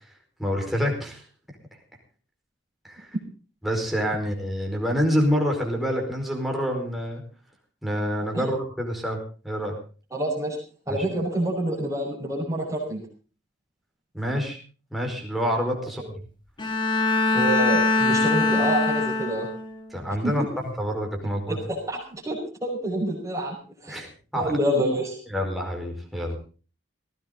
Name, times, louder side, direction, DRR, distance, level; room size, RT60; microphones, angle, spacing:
voice 1, 0.4-1.2 2.8-3.1 3.6-7.2 7.8-9.2 9.4-9.8 10.9-11.0 14.1-14.6 14.9-16.0 19.9-20.4 20.8-21.6 23.9-24.1 24.3-24.5 25.3-26.4, equal, ahead, 0 dB, 4.9 m, -27 dB
voice 2, 10.1-10.6 10.9-13.0 16.0-16.1 17.3-19.5 20.2-20.3 21.5-23.6 23.8-24.0 24.4-25.2, right 1 dB, 15° right, -4 dB, 5.4 m, -27 dB
Bowed string instrument, 16.6-19.8, left 3 dB, 25° left, 2.6 m, -22 dB
18.5 x 16.5 x 4.0 m, 0.37 s
head